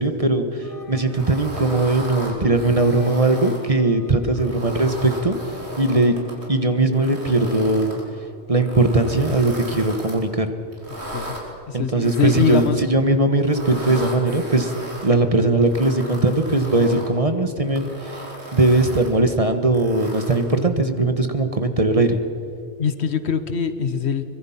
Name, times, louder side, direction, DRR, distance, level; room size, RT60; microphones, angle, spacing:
voice 1, 0.0-5.4 5.8-6.1 6.5-8.0 8.5-10.5 11.7-14.7 15.0-18.1 18.5-22.2, right 2 dB, 30° right, 8 dB, 1.3 m, -19 dB
sound 1, 0.6-8.1, left 2 dB, 50° left, 2.3 m, -43 dB
sound 2, 1.1-3.7 4.2-6.5 6.9-8.0 8.6-10.2 10.7-11.4 12.0-12.9 13.4-15.1 15.6-17.1 17.6-19.2 19.7-20.6, right 1 dB, 70° right, 4.2 m, -36 dB
voice 2, 11.7-12.8 22.8-24.2, left 7 dB, 70° left, 11 dB, 1.3 m, -23 dB
24.0 x 22.0 x 5.8 m, 2.6 s
omnidirectional pair, 1.2 m